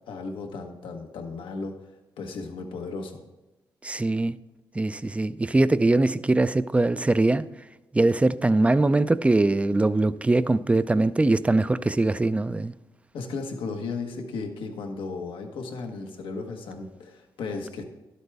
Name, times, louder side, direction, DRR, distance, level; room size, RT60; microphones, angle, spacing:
voice 1, 0.1-1.7 2.2-3.2 13.1-17.8, left 4 dB, 90° left, 1.2 m, -35 dB
voice 2, 3.8-4.4 4.8-7.5 7.9-12.7, right 2 dB, 15° right, 0.4 m, -22 dB
12.0 x 8.2 x 3.4 m
cardioid pair, 75°, 8 cm